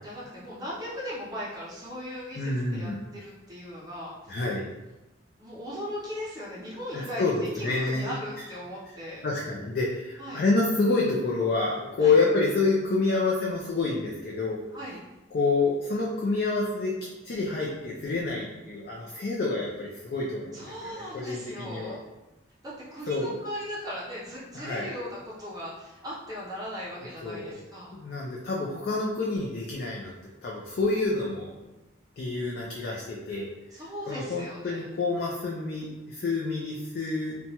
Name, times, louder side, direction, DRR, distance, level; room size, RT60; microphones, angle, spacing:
voice 1, 0.0-4.4 5.4-9.2 10.2-10.4 12.0-12.2 14.7-15.0 20.5-22.0 22.6-27.9 33.7-34.8, equal, 20° right, -6 dB, 0.5 m, -38 dB
voice 2, 2.4-3.0 4.3-4.7 6.9-8.4 8.9-14.6 15.3-16.9 17.2-22.0 23.1-23.3 24.5-24.9 27.2-27.7 27.9-30.1 30.4-31.7 32.2-37.4, left 3 dB, 55° left, -3 dB, 0.4 m, -28 dB
2.9 x 2.2 x 2.8 m, 1.0 s
head